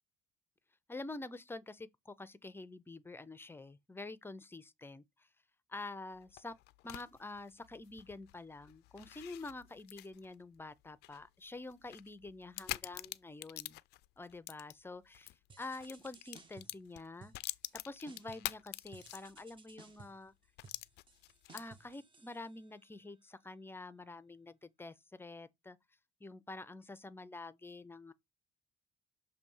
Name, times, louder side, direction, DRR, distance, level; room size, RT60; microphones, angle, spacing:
voice 1, 0.9-5.3 5.7-6.6 6.8-13.8 14.2-17.3 17.8-20.3 21.5-25.8 26.2-28.1, left 2 dB, 15° left, 0.5 m, -47 dB
sound 1, 6.1-15.4 15.7-19.6 19.9-20.0 20.6-21.9, left 18 dB, 80° left, 0.4 m, -47 dB
sound 2, 15.5-16.9 17.2-17.8 18.1-18.6 18.9-22.9, right 4 dB, 30° right, 1.0 m, -59 dB
6.7 x 2.8 x 5.4 m
cardioid pair, 110°, 17 cm